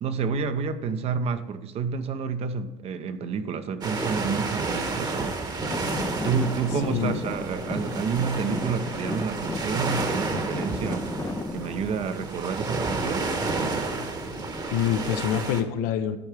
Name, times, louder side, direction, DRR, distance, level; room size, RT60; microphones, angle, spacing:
voice 1, 0.0-5.5 6.2-11.1 11.5-13.3, right 5 dB, 45° right, 0.8 m, -29 dB
sound 1, 3.8-15.6, right 3 dB, 30° right, 1.3 m, -31 dB
Traffic noise roadway noise / Engine, 5.7-12.0, left 3 dB, 15° left, 0.5 m, -35 dB
voice 2, 6.8-7.2 14.7-16.2, left 9 dB, 75° left, 0.8 m, -26 dB
11.0 x 4.6 x 5.0 m
supercardioid pair, 100°, 14 cm